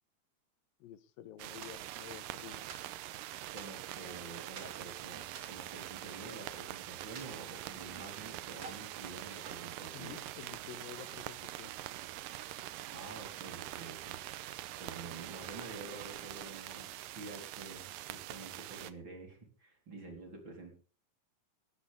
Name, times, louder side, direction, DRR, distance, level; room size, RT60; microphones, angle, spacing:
voice 1, 0.8-2.6 9.9-11.8, left 11 dB, 80° left, 14 dB, 2.7 m, -50 dB
sound 1, 1.4-18.9, right 14 dB, 75° right, 2.4 m, -44 dB
sound 2, 1.6-2.3 2.7-4.1 4.6-4.8 5.3-6.6 7.2-8.2 8.6-8.9 9.4-10.5, right 5 dB, 50° right, 3.2 m, -52 dB
voice 2, 3.5-10.3 12.9-16.9 17.1-20.7, right 3 dB, 35° right, 3 dB, 4.4 m, -49 dB
18.5 x 12.5 x 3.6 m, 0.36 s
omnidirectional pair, 4.1 m